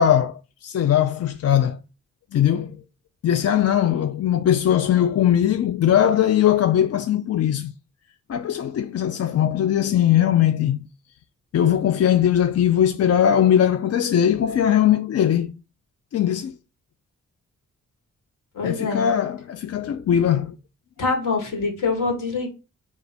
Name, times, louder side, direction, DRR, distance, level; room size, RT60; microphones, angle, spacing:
voice 1, 0.0-1.8 2.3-2.8 3.2-7.7 8.3-10.8 11.5-15.5 16.1-16.5 18.6-20.6, left 10 dB, 50° left, 0.4 m, -20 dB
voice 2, 18.5-19.1 21.0-22.5, left 4 dB, 65° left, 1.5 m, -24 dB
3.3 x 3.0 x 4.1 m
supercardioid pair, 40°, 34 cm